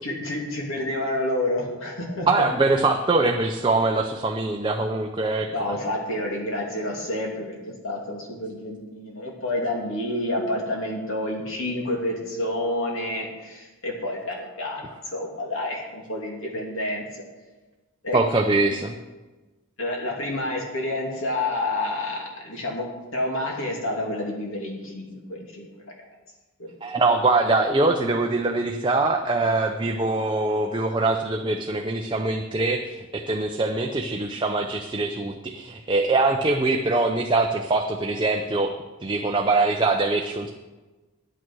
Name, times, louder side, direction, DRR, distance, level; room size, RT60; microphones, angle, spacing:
voice 1, 0.0-2.3 5.5-17.2 18.0-18.2 18.7-18.8 19.8-25.7 26.6-26.7, left 1 dB, 65° left, -1 dB, 2.8 m, -29 dB
voice 2, 2.3-5.5 18.1-18.9 26.8-38.7 39.0-40.5, right 3 dB, 20° right, 3 dB, 0.6 m, -23 dB
11.0 x 9.1 x 6.2 m, 1.2 s
head